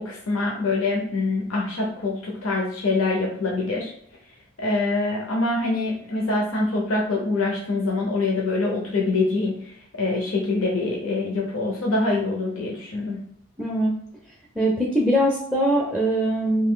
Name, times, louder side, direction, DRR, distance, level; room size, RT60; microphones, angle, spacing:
voice 1, 0.0-3.9 4.6-13.2, left 3 dB, 70° left, -2 dB, 0.7 m, -25 dB
voice 2, 13.6-13.9 14.6-16.7, right 1 dB, 5° right, -3 dB, 0.5 m, -22 dB
3.2 x 2.6 x 3.6 m, 0.64 s
head